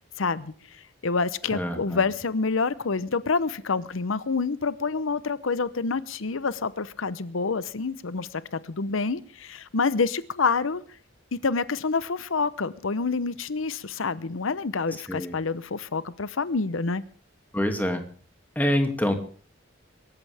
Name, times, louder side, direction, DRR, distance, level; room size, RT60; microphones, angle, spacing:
voice 1, 0.2-0.5 1.0-10.8 11.3-17.0, left 4 dB, 85° left, 0.8 m, -27 dB
voice 2, 1.5-2.0 15.1-15.3 17.5-18.0 18.6-19.1, equal, 10° left, 2.4 m, -25 dB
25.5 x 14.0 x 3.5 m
head